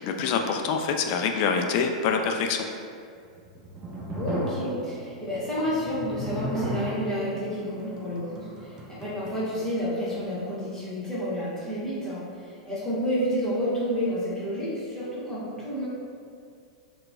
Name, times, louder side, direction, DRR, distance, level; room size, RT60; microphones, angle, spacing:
voice 1, 0.0-2.7, left 5 dB, 45° left, 4 dB, 0.3 m, -25 dB
sound 1, 3.3-10.5, right 1 dB, 20° right, 0.5 m, -36 dB
voice 2, 4.1-15.9, equal, 15° left, -10 dB, 1.2 m, -30 dB
3.8 x 2.3 x 2.3 m, 2.3 s
hypercardioid pair, 105°, 4 cm